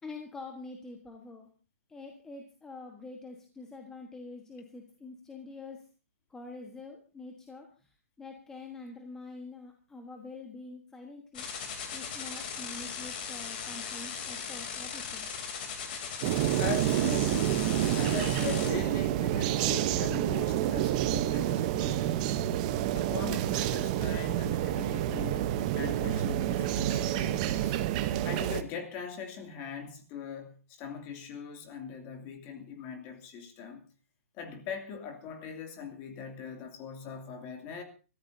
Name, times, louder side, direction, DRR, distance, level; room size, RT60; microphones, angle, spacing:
voice 1, 0.0-1.5 1.9-5.9 6.3-15.3, left 3 dB, 5° left, 3 dB, 1.3 m, -46 dB
sound 1, 11.3-18.7, left 6 dB, 40° left, 3.1 m, -38 dB
sound 2, 16.2-28.6, right 12 dB, 30° right, 0.9 m, -28 dB
voice 2, 16.6-22.4 22.9-27.8 28.2-33.8 34.4-37.8, left 6 dB, 25° left, 4 dB, 2.7 m, -41 dB
25.0 x 14.0 x 2.7 m, 0.34 s
hypercardioid pair, 155°, 8 cm